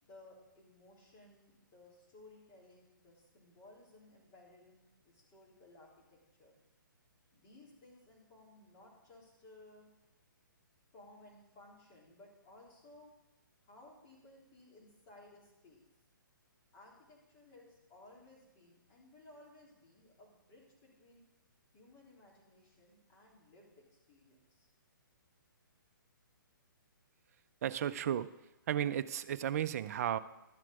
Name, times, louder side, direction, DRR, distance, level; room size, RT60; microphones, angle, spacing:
voice 1, 0.0-6.6 7.3-9.9 10.9-13.1 13.6-15.8 16.7-21.2 21.7-24.7, left 2 dB, 30° left, -3 dB, 3.7 m, -59 dB
voice 2, 27.6-28.3 28.7-30.2, right 10 dB, 45° right, 13 dB, 0.5 m, -34 dB
12.0 x 7.5 x 5.3 m, 0.99 s
figure-of-eight pair, 135°, 11 cm